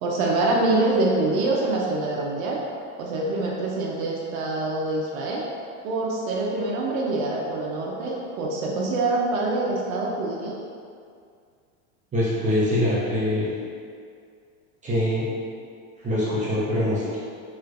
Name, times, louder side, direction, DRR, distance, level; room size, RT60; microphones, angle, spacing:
voice 1, 0.0-2.6 3.0-5.5 5.8-10.5, right 2 dB, 75° right, -3 dB, 0.6 m, -25 dB
voice 2, 12.1-13.5 14.8-15.3 16.0-17.2, left 1 dB, 15° right, -10 dB, 0.7 m, -23 dB
3.1 x 3.1 x 2.4 m, 2.2 s
supercardioid pair, 125°, 42 cm